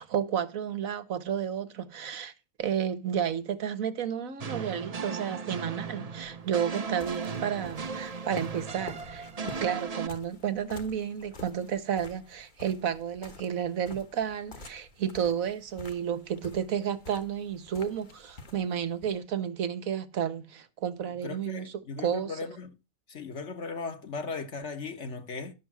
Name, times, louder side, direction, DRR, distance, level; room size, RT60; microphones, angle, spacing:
voice 1, 0.0-2.3 2.6-22.3, right 8 dB, 70° right, 1.4 m, -32 dB
sound 1, 4.4-10.1, right 5 dB, 35° right, 0.7 m, -37 dB
sound 2, 6.2-19.2, left 3 dB, 35° left, 1.3 m, -49 dB
voice 2, 21.2-22.7 23.1-25.5, left 4 dB, 55° left, 1.6 m, -37 dB
11.5 x 6.8 x 6.1 m
omnidirectional pair, 1.5 m